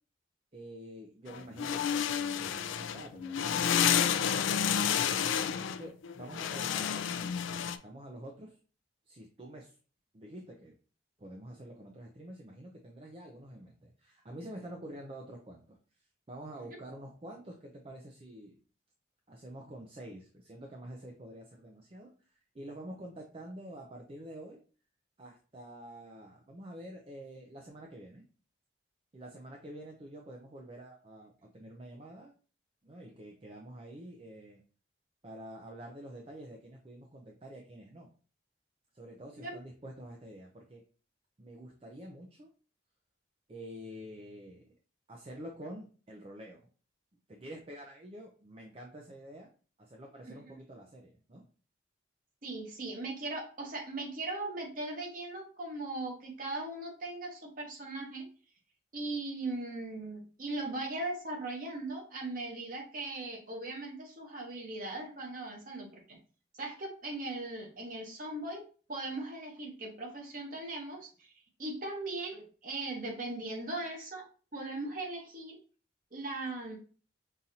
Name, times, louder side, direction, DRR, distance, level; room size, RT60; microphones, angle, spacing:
voice 1, 0.5-8.6 9.1-9.8 10.1-10.7 11.2-18.6 19.3-24.6 25.2-28.2 29.1-32.3 32.8-34.6 35.2-38.1 38.9-40.8 41.4-42.5 43.5-44.7 45.1-46.6 47.3-49.5 49.8-51.4, right 1 dB, 30° right, 0 dB, 0.5 m, -48 dB
sound 1, 1.3-7.8, left 8 dB, 85° left, 0.3 m, -30 dB
voice 2, 52.4-58.3 58.9-66.0 66.6-68.6 68.9-71.3 71.6-74.2 74.5-75.6 76.1-76.8, right 2 dB, 45° right, 1 dB, 1.1 m, -39 dB
5.5 x 2.5 x 2.8 m, 0.39 s
head